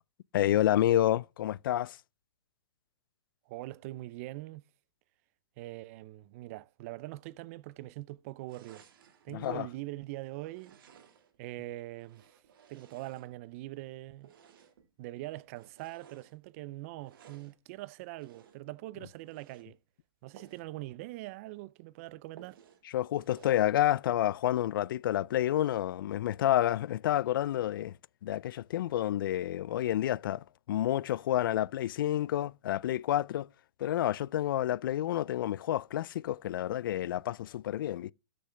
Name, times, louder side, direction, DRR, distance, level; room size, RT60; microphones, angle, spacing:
voice 1, 0.3-2.0 9.3-9.7 22.9-27.9 28.2-33.5 33.8-38.1, left 12 dB, 60° left, 0.4 m, -29 dB
voice 2, 3.5-4.6 5.6-8.8 9.2-10.8 11.4-12.4 12.7-14.3 15.0-19.8 20.2-22.6, right 18 dB, 35° right, 0.4 m, -43 dB
sound 1, 8.5-9.3 10.5-11.4 11.9-13.6 14.2-14.9 15.5-16.4 17.0-17.6 18.2-18.7 19.2-19.7 20.3-20.7 21.1-21.2 21.5-21.6 22.4-22.8 23.2-23.7, right 8 dB, 60° right, 2.0 m, -58 dB
13.0 x 6.6 x 3.3 m
hypercardioid pair, 145°, 13 cm